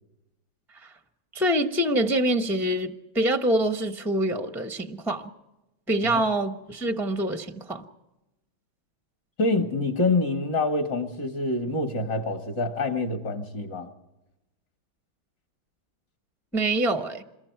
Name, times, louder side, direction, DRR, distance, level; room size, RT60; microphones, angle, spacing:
voice 1, 1.3-5.3 5.9-7.8 16.5-17.2, right 1 dB, 5° right, 0.4 m, -25 dB
voice 2, 9.4-13.9, left 2 dB, 60° left, 2.4 m, -26 dB
27.0 x 22.0 x 4.7 m
omnidirectional pair, 2.3 m